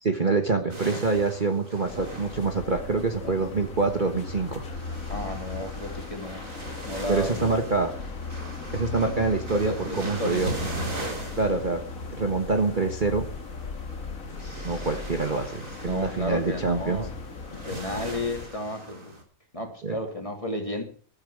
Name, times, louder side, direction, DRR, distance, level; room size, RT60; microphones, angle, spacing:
voice 1, 0.0-4.6 7.1-7.9 8.7-10.5 11.4-11.8 12.1-13.2 14.6-17.1 19.8-20.0, right 3 dB, 30° right, 5 dB, 1.4 m, -26 dB
sound 1, 0.7-19.2, right 2 dB, 55° right, 4.2 m, -40 dB
sound 2, 1.8-18.5, left 4 dB, 60° left, 1.9 m, -38 dB
voice 2, 5.1-6.5 6.8-7.5 9.6-10.6 14.4-14.9 15.8-17.1 17.5-19.1 19.5-20.8, left 1 dB, 20° left, 3 dB, 3.0 m, -33 dB
14.5 x 13.0 x 4.9 m, 0.43 s
omnidirectional pair, 1.6 m